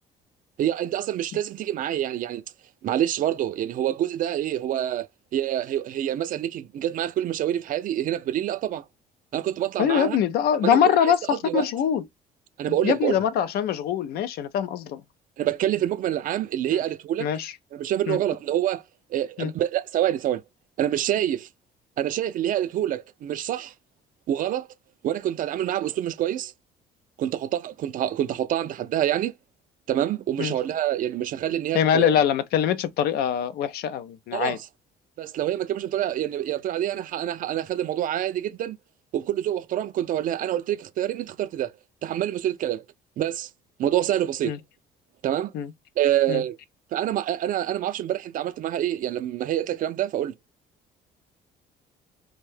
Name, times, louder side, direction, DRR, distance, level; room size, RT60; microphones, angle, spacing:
voice 1, 0.6-2.4 2.8-5.1 5.3-8.8 9.3-10.2 10.6-11.7 12.6-13.2 15.4-17.3 17.7-18.8 19.1-20.4 20.8-21.5 22.0-23.7 24.3-24.7 25.0-26.5 27.2-29.3 29.9-32.2 34.3-34.7 35.2-38.8 39.1-41.7 42.0-42.8 43.2-43.5 43.8-44.5 45.2-45.5 46.0-46.6 46.9-50.3, right 11 dB, 55° right, 0.4 m, -26 dB
voice 2, 9.8-12.0 12.8-15.0 16.7-16.8 17.2-17.5 18.1-18.2 19.4-19.5 30.4-30.5 31.7-34.6 44.4-44.6 45.5-45.7 46.3-46.4, left 9 dB, 70° left, 0.4 m, -23 dB
2.6 x 2.2 x 3.2 m
cardioid pair, 110°, 17 cm